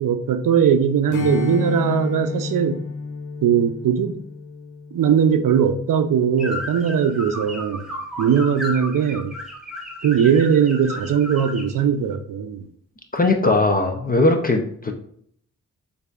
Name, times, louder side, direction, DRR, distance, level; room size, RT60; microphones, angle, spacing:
voice 1, 0.0-2.8 3.4-4.2 4.9-7.8 8.2-9.3 10.0-12.6, right 7 dB, 75° right, 9 dB, 0.5 m, -19 dB
Strum, 1.1-5.9, left 4 dB, 65° left, 0.9 m, -30 dB
sound 1, 6.4-11.7, equal, ahead, 1.3 m, -33 dB
voice 2, 13.1-14.9, left 2 dB, 25° left, 3 dB, 0.6 m, -19 dB
6.7 x 2.7 x 2.4 m, 0.64 s
cardioid pair, 60°, 33 cm